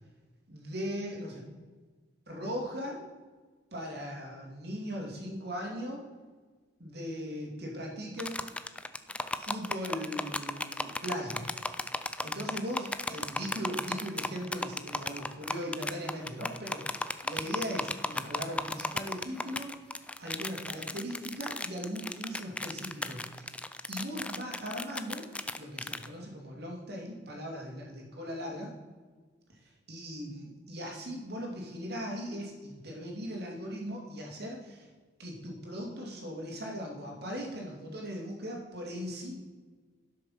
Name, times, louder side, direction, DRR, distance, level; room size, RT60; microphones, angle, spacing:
voice 1, 0.5-1.5 2.3-3.0 3.7-6.0 6.8-8.5 9.3-11.4 12.2-23.5 23.9-25.2 25.6-28.7 29.5-34.9 35.2-39.3, equal, 55° right, -1 dB, 2.8 m, -39 dB
sound 1, 8.2-26.1, left 2 dB, 5° left, 0.4 m, -35 dB
11.5 x 6.6 x 5.8 m, 1.4 s
head